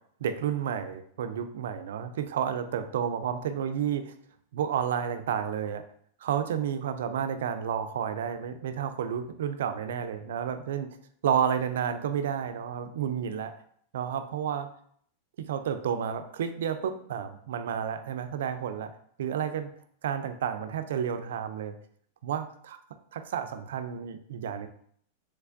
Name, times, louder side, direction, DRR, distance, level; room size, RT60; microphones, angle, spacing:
voice 1, 0.2-4.1 4.5-5.8 6.2-10.9 11.2-13.5 13.9-14.7 15.4-18.9 19.2-19.7 20.0-21.8 22.2-22.8 23.1-24.7, right 8 dB, 75° right, 9 dB, 0.3 m, -31 dB
3.2 x 3.2 x 2.5 m, 0.63 s
hypercardioid pair, 115°, 0 cm